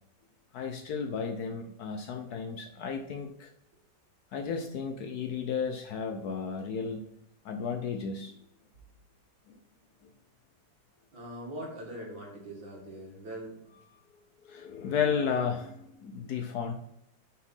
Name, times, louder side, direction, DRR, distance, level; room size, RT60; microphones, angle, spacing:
voice 1, 0.5-3.5 4.3-7.1 7.4-8.3 14.4-16.7, left 6 dB, 70° left, 4 dB, 1.0 m, -33 dB
voice 2, 11.1-13.6, right 1 dB, 75° right, -2 dB, 2.6 m, -42 dB
5.8 x 4.3 x 5.4 m, 0.78 s
omnidirectional pair, 2.1 m